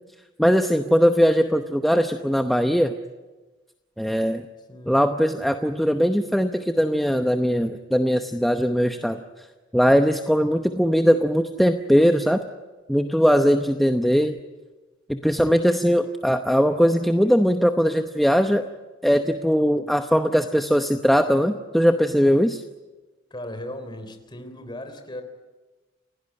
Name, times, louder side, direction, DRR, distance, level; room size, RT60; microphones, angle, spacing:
voice 1, 0.4-2.9 4.0-4.5 4.9-9.2 9.7-12.4 12.9-14.4 15.1-18.6 19.0-22.6, equal, ahead, 6 dB, 0.8 m, -20 dB
voice 2, 4.7-5.0 23.3-25.2, left 1 dB, 25° left, 7 dB, 3.4 m, -37 dB
29.5 x 17.0 x 9.7 m, 1.2 s
head